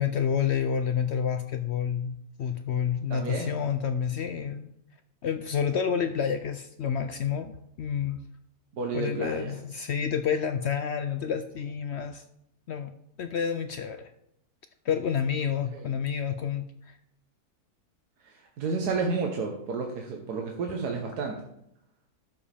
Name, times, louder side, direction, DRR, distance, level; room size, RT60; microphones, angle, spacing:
voice 1, 0.0-4.7 5.2-8.2 8.9-12.2 12.7-12.9 13.2-14.1 14.8-16.9, left 7 dB, 70° left, 9 dB, 0.6 m, -29 dB
voice 2, 3.1-3.5 8.7-9.5 15.7-15.8 18.2-21.4, right 4 dB, 85° right, 1 dB, 1.6 m, -31 dB
11.5 x 7.3 x 3.5 m, 0.77 s
omnidirectional pair, 1.7 m